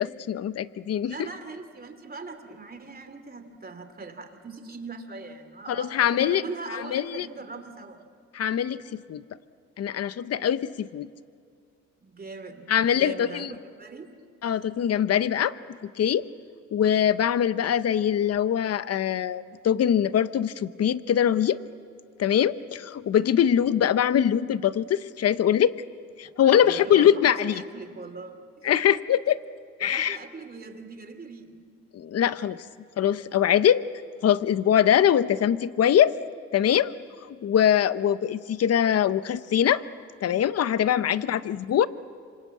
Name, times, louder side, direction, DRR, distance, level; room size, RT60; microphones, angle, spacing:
voice 1, 0.0-1.3 5.7-6.4 6.7-7.3 8.3-9.2 9.8-11.1 12.7-13.5 14.4-15.5 15.8-16.3 16.7-21.6 22.2-25.7 26.2-27.6 28.6-29.4 29.8-30.2 31.9-32.6 33.0-33.9 34.2-36.2 36.5-36.9 37.3-39.8 40.2-41.9, left 9 dB, 55° left, 15 dB, 0.8 m, -23 dB
voice 2, 1.1-8.0 12.0-14.6 26.3-28.8 29.8-31.6 41.0-41.4, right 3 dB, 30° right, 7 dB, 2.9 m, -41 dB
27.5 x 25.5 x 8.5 m, 2.2 s
cardioid pair, 90°, 30 cm